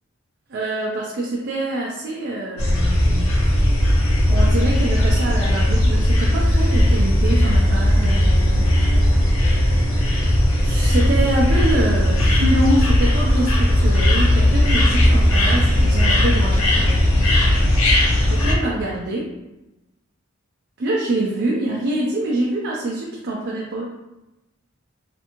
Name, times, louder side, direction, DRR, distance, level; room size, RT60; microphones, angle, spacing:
voice 1, 0.5-3.3 4.3-8.7 9.4-16.9 18.3-19.2 20.8-23.8, right 1 dB, 55° right, -3 dB, 0.4 m, -25 dB
sound 1, 2.6-18.5, left 1 dB, 85° left, 0.6 m, -17 dB
2.9 x 2.6 x 2.5 m, 0.97 s
head